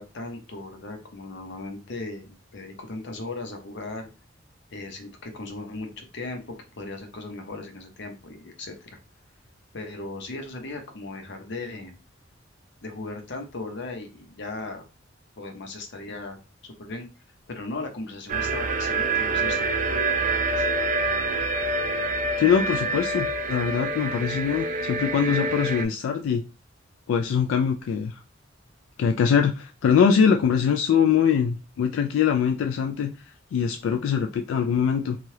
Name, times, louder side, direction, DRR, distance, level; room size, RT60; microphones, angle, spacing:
voice 1, 0.0-4.1 4.7-9.0 9.7-12.0 12.8-14.8 15.4-17.1 17.5-20.0 20.6-20.7, left 2 dB, 65° left, 5 dB, 0.7 m, -37 dB
sound 1, 18.3-25.8, right 3 dB, 45° right, 0.4 m, -26 dB
voice 2, 22.4-26.4 27.1-28.2 29.0-33.1 33.5-35.2, left 7 dB, 90° left, 4 dB, 0.3 m, -23 dB
3.1 x 2.3 x 2.8 m, 0.30 s
head